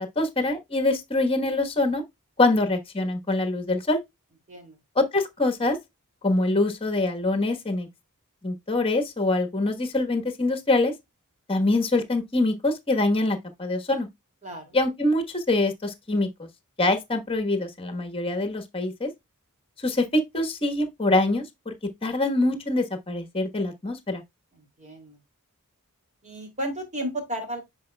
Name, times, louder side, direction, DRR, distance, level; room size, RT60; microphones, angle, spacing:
voice 1, 0.2-2.0 2.4-4.0 4.9-5.8 6.2-7.9 8.4-10.9 11.5-14.1 14.7-16.5 16.8-19.1 19.8-21.7 22.0-24.2, left 2 dB, 25° left, 1.2 m, -24 dB
voice 2, 14.4-14.7 24.5-25.2 26.2-27.6, right 1 dB, 35° right, 2.7 m, -34 dB
9.4 x 4.9 x 2.2 m
head